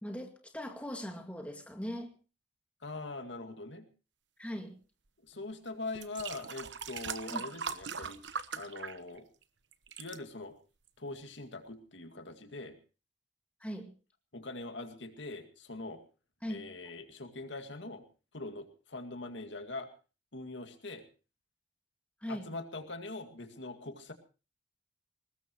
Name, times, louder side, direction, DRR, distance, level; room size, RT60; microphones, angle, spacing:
voice 1, 0.0-2.1 4.4-4.7 7.3-7.5 13.6-13.9 16.4-16.7 22.2-22.5, equal, 5° left, 4 dB, 2.1 m, -40 dB
voice 2, 2.8-3.9 5.2-8.2 8.6-9.3 10.0-10.5 11.0-12.8 14.3-16.0 16.5-18.0 18.3-19.9 20.3-21.1 22.3-24.1, left 2 dB, 85° left, 7 dB, 2.1 m, -42 dB
sound 1, 5.3-5.4 5.9-9.4 9.7-10.2 10.9-11.0, right 6 dB, 80° right, 1.1 m, -40 dB
21.5 x 19.5 x 3.0 m, 0.34 s
head